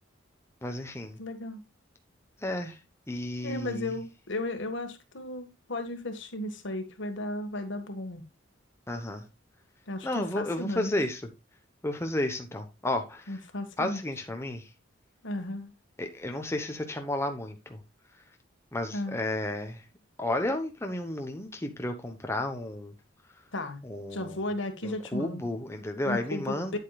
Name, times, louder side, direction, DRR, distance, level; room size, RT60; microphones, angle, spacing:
voice 1, 0.6-1.2 2.4-2.8 3.1-3.9 8.9-9.2 10.0-11.2 11.8-13.4 13.8-14.7 16.0-17.8 18.7-19.8 20.2-22.9 23.8-24.4 24.8-26.8, left 1 dB, 15° left, 1.0 m, -32 dB
voice 2, 1.2-1.6 3.4-8.2 9.9-10.9 13.3-14.0 15.2-15.7 18.9-19.2 23.5-23.8 24.1-25.4 26.1-26.8, left 1 dB, 65° left, 1.6 m, -35 dB
8.9 x 8.3 x 2.4 m
head